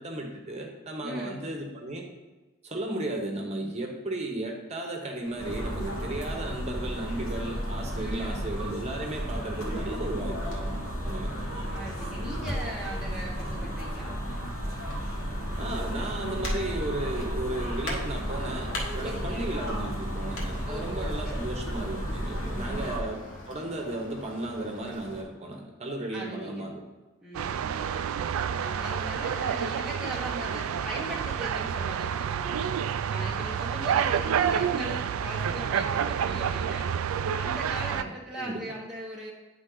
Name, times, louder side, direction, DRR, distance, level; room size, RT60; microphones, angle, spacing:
voice 1, 0.0-2.1 2.6-10.8 11.0-11.5 15.6-18.7 18.9-26.8 27.4-27.6 37.9-38.6, right 1 dB, 30° right, 1 dB, 1.0 m, -35 dB
voice 2, 1.0-1.4 8.0-8.5 11.7-14.1 19.0-19.5 20.7-21.4 22.5-23.0 26.1-26.7 27.2-28.1 28.6-32.7 33.1-36.9 37.2-39.3, right 1 dB, 5° right, -5 dB, 0.8 m, -39 dB
sound 1, 5.2-25.2, left 1 dB, 65° left, 1.4 m, -43 dB
sound 2, 5.4-23.0, equal, 90° left, 1.5 m, -33 dB
sound 3, 27.3-38.0, right 8 dB, 75° right, 0.3 m, -29 dB
9.6 x 3.7 x 3.8 m, 1.2 s
head